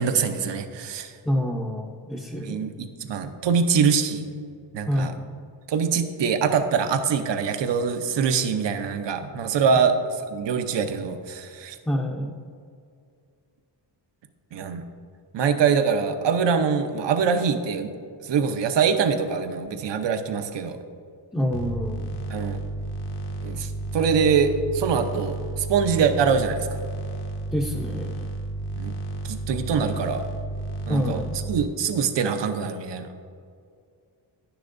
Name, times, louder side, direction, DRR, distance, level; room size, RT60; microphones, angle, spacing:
voice 1, 0.0-1.1 2.4-4.3 4.7-5.1 5.7-9.9 10.3-11.8 14.5-14.8 15.3-17.9 18.2-20.8 22.3-22.6 23.4-26.8 28.7-28.9 29.2-30.2 30.9-31.2 31.5-33.1, right 6 dB, 70° right, 8 dB, 0.8 m, -24 dB
voice 2, 1.2-2.7 4.9-5.3 11.9-12.4 21.3-22.2 27.5-28.3 30.9-31.4, equal, 5° left, -2 dB, 0.6 m, -27 dB
sound 1, 21.5-31.7, right 2 dB, 60° left, 1.1 m, -32 dB
11.0 x 10.0 x 2.6 m, 2.3 s
wide cardioid pair, 145°, 45 cm